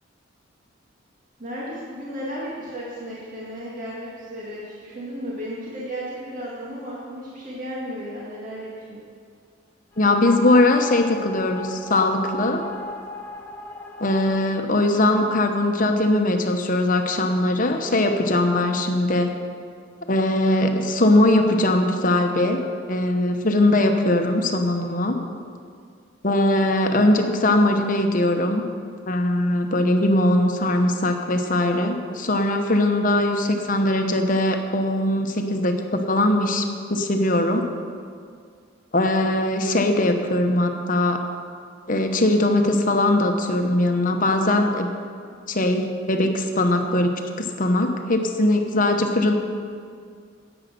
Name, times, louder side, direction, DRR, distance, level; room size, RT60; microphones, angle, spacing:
voice 1, 1.4-9.0, equal, 40° right, -6 dB, 2.0 m, -34 dB
sound 1, 9.9-14.3, left 2 dB, 10° left, 1.3 m, -37 dB
voice 2, 10.0-12.6 14.0-19.3 20.1-25.2 26.2-28.6 29.1-37.6 38.9-41.2 41.9-44.9 45.5-49.3, left 1 dB, 45° left, 5 dB, 1.0 m, -20 dB
10.5 x 8.9 x 6.8 m, 2.2 s
head